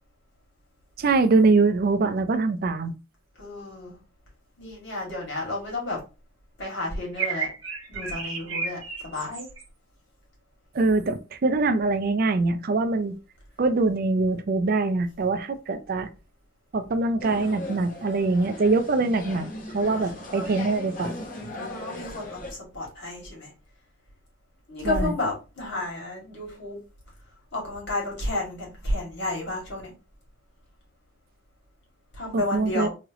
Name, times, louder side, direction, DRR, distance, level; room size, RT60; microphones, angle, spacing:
voice 1, 1.0-2.9 10.7-13.1 13.6-16.1 16.7-21.1 24.8-25.1 32.3-32.9, right 3 dB, 50° right, 0.4 m, -23 dB
voice 2, 3.4-4.0 4.6-6.0 6.6-7.5 7.9-9.5 19.8-20.5 21.2-23.5 24.7-26.8 27.5-29.9 32.1-32.9, left 2 dB, 60° left, 2.3 m, -32 dB
sound 1, 7.1-9.6, right 5 dB, 90° right, 1.1 m, -32 dB
sound 2, 17.2-22.5, left 1 dB, 45° left, 1.0 m, -38 dB
3.6 x 3.1 x 2.9 m
head